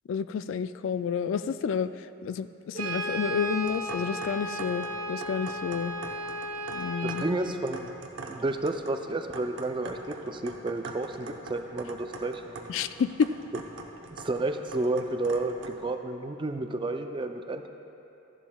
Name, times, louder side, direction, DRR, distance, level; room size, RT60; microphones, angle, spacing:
voice 1, 0.1-1.9 2.2-5.9 6.7-7.2 12.7-13.3, left 6 dB, 65° left, 12 dB, 0.3 m, -30 dB
Brass instrument, 2.7-7.3, right 1 dB, 40° right, 1.0 m, -34 dB
sound 1, 3.4-16.0, right 3 dB, 65° right, 0.8 m, -44 dB
voice 2, 7.0-7.9 8.3-12.7 14.1-17.7, right 2 dB, 25° right, 6 dB, 0.4 m, -31 dB
14.5 x 11.0 x 2.3 m, 2.9 s
head